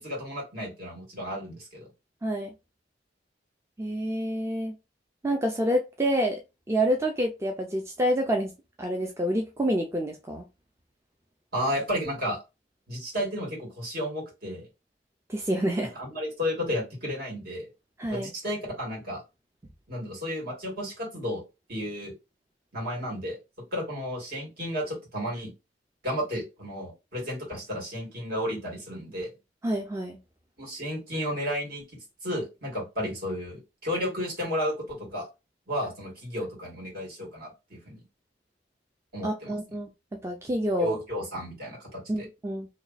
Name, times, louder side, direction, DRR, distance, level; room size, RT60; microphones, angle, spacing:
voice 1, 0.0-1.9 11.5-12.4 12.9-14.7 16.0-17.7 18.1-19.2 19.9-21.4 21.7-22.1 22.7-23.4 23.7-25.5 26.0-29.3 30.6-31.8 32.2-35.3 35.7-38.0 39.1-39.8 40.8-42.3, equal, 60° right, 2.1 m, -33 dB
voice 2, 3.8-4.7 5.2-6.4 6.7-8.5 8.8-10.4 15.3-15.9 18.0-18.3 29.6-30.2 39.2-41.0 42.1-42.7, equal, 15° right, 0.4 m, -28 dB
3.0 x 2.2 x 3.9 m
head